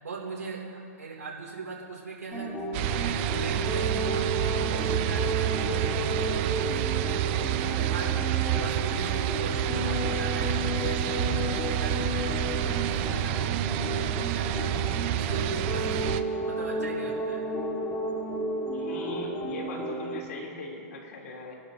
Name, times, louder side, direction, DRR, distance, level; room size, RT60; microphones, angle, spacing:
voice 1, 0.0-2.6 2.9-4.3 4.6-6.9 7.7-14.8 15.1-16.2 16.4-17.4, right 4 dB, 90° right, -4 dB, 3.2 m, -40 dB
sound 1, 2.3-20.2, equal, 20° left, 2.1 m, -32 dB
sound 2, 2.7-16.2, right 14 dB, 45° right, 0.6 m, -29 dB
voice 2, 18.7-21.6, left 2 dB, 70° left, -2 dB, 3.6 m, -39 dB
23.5 x 12.0 x 2.9 m, 2.5 s
hypercardioid pair, 120°, 9 cm